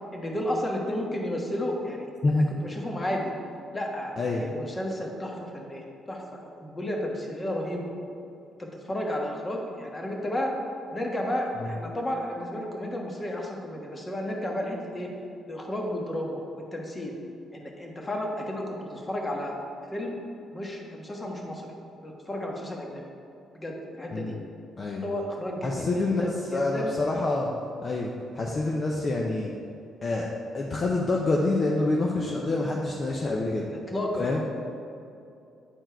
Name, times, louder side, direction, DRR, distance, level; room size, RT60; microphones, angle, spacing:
voice 1, 0.1-2.1 2.6-3.3 3.7-6.3 6.6-7.9 8.6-10.5 10.9-15.1 15.5-17.1 17.5-19.5 19.9-20.2 20.5-21.7 22.0-23.0 23.5-24.3 25.0-26.9 33.7-34.3, left 1 dB, 25° left, 0 dB, 1.3 m, -32 dB
voice 2, 2.2-2.5 4.2-4.5 24.1-24.4 24.8-25.0 25.6-27.5 27.8-29.5 30.0-33.7 34.2-34.4, left 2 dB, 40° left, -1 dB, 0.7 m, -27 dB
9.1 x 4.4 x 4.6 m, 2.6 s
cardioid pair, 90°, 0 cm